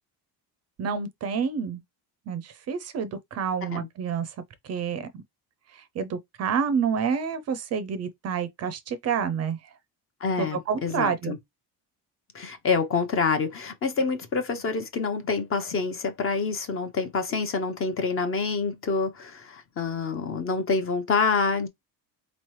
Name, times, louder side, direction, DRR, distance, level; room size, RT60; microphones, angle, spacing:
voice 1, 0.8-1.8 2.3-4.3 4.6-5.2 5.7-9.7 10.4-11.3, right 6 dB, 40° right, 0.5 m, -29 dB
voice 2, 10.2-11.4 12.3-21.7, left 4 dB, 35° left, 0.7 m, -27 dB
4.0 x 3.0 x 3.1 m
cardioid pair, 155°, 40 cm